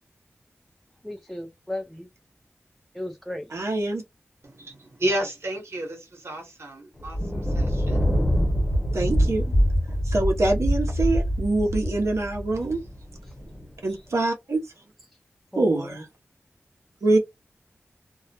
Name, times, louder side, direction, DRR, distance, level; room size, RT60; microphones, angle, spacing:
voice 1, 1.0-2.1 2.9-3.7 13.2-13.4 13.9-14.1 15.1-15.2 15.5-16.0, left 1 dB, 5° left, 0.3 m, -36 dB
voice 2, 3.5-4.0 8.9-9.4 10.0-12.8 13.8-14.6 15.6-16.0 17.0-17.2, right 2 dB, 85° right, 0.7 m, -24 dB
voice 3, 4.5-8.1, right 1 dB, 65° right, 1.0 m, -32 dB
Thunder, 7.0-13.6, equal, 25° left, 0.9 m, -24 dB
2.3 x 2.0 x 2.7 m
wide cardioid pair, 85°, 5 cm